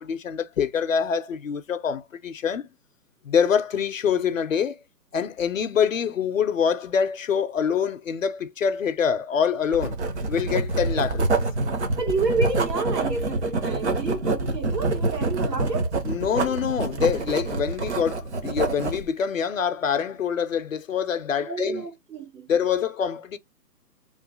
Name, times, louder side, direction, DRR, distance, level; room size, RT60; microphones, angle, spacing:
voice 1, 0.0-2.7 3.2-4.8 5.1-10.0 10.3-11.4 16.0-21.9 22.5-23.4, left 7 dB, 55° left, 0.5 m, -25 dB
Writing, 9.7-19.1, right 3 dB, 45° right, 0.8 m, -26 dB
voice 2, 12.0-16.0 21.4-22.5, right 4 dB, 85° right, 1.7 m, -29 dB
3.1 x 2.4 x 3.7 m
hypercardioid pair, 160°, 49 cm